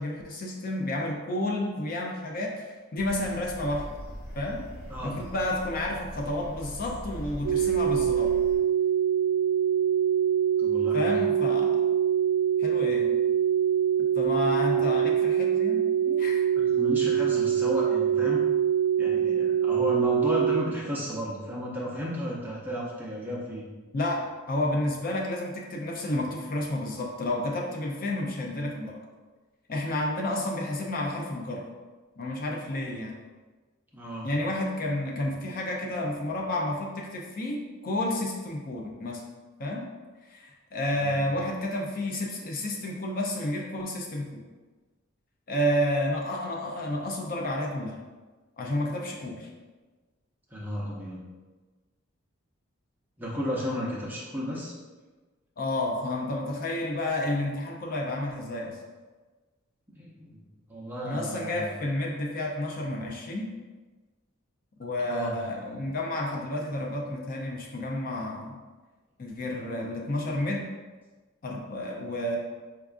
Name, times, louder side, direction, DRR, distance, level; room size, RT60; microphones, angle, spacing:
voice 1, 0.0-3.9 4.3-4.6 5.0-8.3 10.9-11.9 12.6-13.1 14.1-16.4 23.9-29.0 29.7-31.7 32.2-33.2 34.2-39.2 39.6-39.9 40.3-44.4 45.5-48.0 48.6-49.5 55.6-58.8 61.0-63.5 64.8-68.5 69.2-70.7 71.4-72.4, left 1 dB, 45° left, 0 dB, 0.4 m, -30 dB
sound 1, 3.0-8.6, equal, 70° left, 1.4 m, -41 dB
sound 2, 7.4-20.6, right 9 dB, 80° right, 0.4 m, -24 dB
voice 2, 10.6-11.2 16.5-18.5 19.0-23.7 33.9-34.3 41.0-41.3 50.5-51.2 53.2-54.7 60.0-60.4 60.7-61.7 65.1-65.3, equal, 10° right, -5 dB, 0.5 m, -33 dB
4.5 x 2.4 x 2.4 m, 1.3 s
head